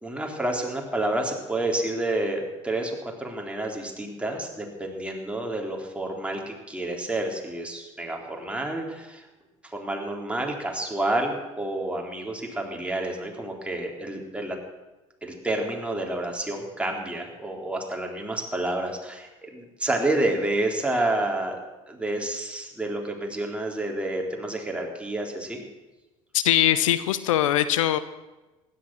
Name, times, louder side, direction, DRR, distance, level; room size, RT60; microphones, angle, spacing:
voice 1, 0.0-9.3 9.6-14.6 15.2-21.6 21.9-25.6, right 1 dB, 5° right, 0 dB, 3.6 m, -29 dB
voice 2, 26.3-28.0, left 12 dB, 85° left, 14 dB, 0.7 m, -21 dB
16.0 x 11.5 x 6.3 m, 1.1 s
hypercardioid pair, 65°, 16 cm